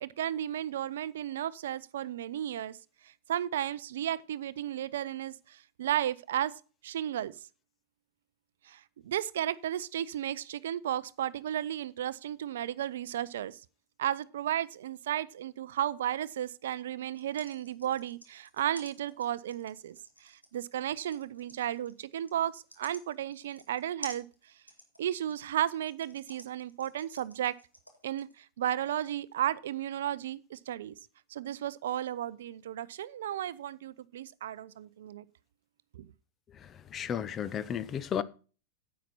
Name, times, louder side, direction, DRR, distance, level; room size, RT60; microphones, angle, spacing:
voice 1, 0.0-2.8 3.0-6.5 6.8-7.3 8.6-13.6 14.0-24.3 25.0-27.5 28.0-30.9 31.3-35.3 35.9-36.1, right 11 dB, 60° right, 0.5 m, -34 dB
sound 1, 17.0-28.3, left 1 dB, 90° left, 2.0 m, -51 dB
voice 2, 36.6-38.2, left 8 dB, 25° left, 0.7 m, -34 dB
10.0 x 8.4 x 4.1 m
figure-of-eight pair, 90°, 0 cm